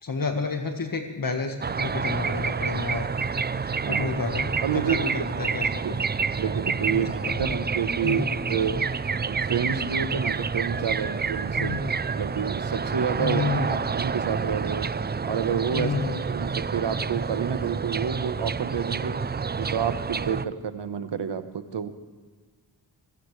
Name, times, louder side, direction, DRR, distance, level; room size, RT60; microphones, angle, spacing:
voice 1, 0.0-3.1 3.9-5.8 6.9-7.5 8.0-8.3 11.6-11.9 13.2-13.8 15.7-16.2, left 4 dB, 50° left, 5 dB, 1.6 m, -30 dB
sound 1, 1.6-20.5, right 5 dB, 25° right, 0.5 m, -28 dB
voice 2, 4.6-5.2 5.8-6.0 6.4-8.8 9.2-11.8 12.1-13.4 13.7-14.9 15.2-16.0 16.3-19.2 19.6-21.9, right 7 dB, 75° right, 10 dB, 1.2 m, -29 dB
25.0 x 15.0 x 3.3 m, 1.5 s
cardioid pair, 50°, 43 cm